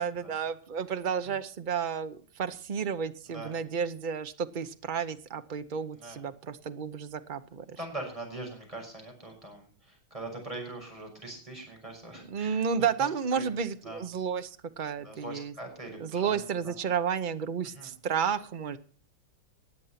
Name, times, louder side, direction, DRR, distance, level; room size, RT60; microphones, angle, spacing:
voice 1, 0.0-7.8 12.3-15.5 16.0-18.8, right 7 dB, 80° right, 10 dB, 0.4 m, -32 dB
voice 2, 7.8-12.6 13.0-13.5 13.8-14.0 15.0-16.7 17.7-17.9, right 2 dB, 15° right, 1 dB, 6.2 m, -42 dB
19.0 x 8.2 x 5.8 m, 0.43 s
omnidirectional pair, 2.2 m